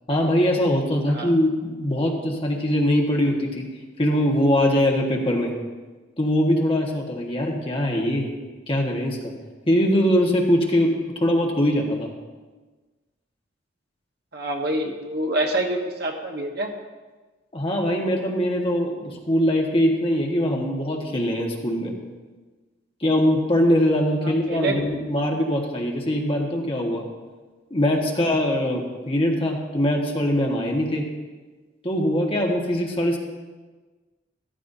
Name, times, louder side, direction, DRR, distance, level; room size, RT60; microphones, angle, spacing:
voice 1, 0.1-3.7 4.0-5.5 6.2-8.3 8.7-9.3 9.7-12.1 17.5-21.9 23.0-27.1 27.7-31.0 31.8-33.2, equal, 30° left, 0 dB, 1.4 m, -22 dB
voice 2, 14.3-16.7 24.2-24.8, right 1 dB, 55° right, 1 dB, 1.3 m, -26 dB
14.0 x 13.0 x 2.7 m, 1.3 s
head